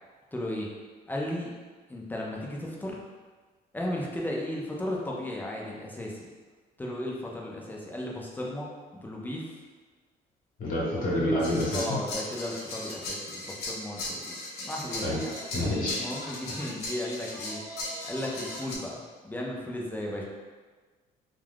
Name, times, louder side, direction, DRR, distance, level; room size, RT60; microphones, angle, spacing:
voice 1, 0.3-0.7 1.1-1.5 1.9-3.0 3.7-6.3 6.8-8.7 8.9-9.4 10.9-11.4 11.7-15.3 15.9-17.6 18.0-19.0 19.2-20.2, left 1 dB, 10° left, -3 dB, 0.5 m, -35 dB
voice 2, 10.6-12.0 15.0-15.2 15.5-16.0, left 1 dB, 55° left, -6 dB, 1.0 m, -28 dB
sound 1, 11.4-18.8, left 1 dB, 80° left, 0.6 m, -37 dB
2.4 x 2.3 x 3.4 m, 1.4 s
cardioid pair, 110°, 17 cm